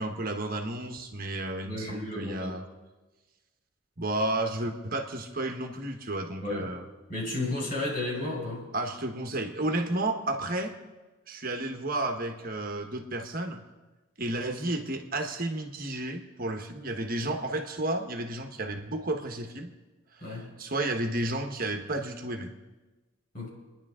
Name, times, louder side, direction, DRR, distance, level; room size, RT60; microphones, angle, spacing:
voice 1, 0.0-2.6 4.0-6.9 8.7-10.7 11.3-13.6 14.2-19.7 20.2-22.5, right 2 dB, 45° right, 4 dB, 1.2 m, -32 dB
voice 2, 1.6-2.5 6.4-6.7 7.1-8.7 20.2-20.5 23.3-23.5, left 2 dB, 45° left, -2 dB, 4.7 m, -33 dB
29.5 x 10.5 x 3.7 m, 1.2 s
head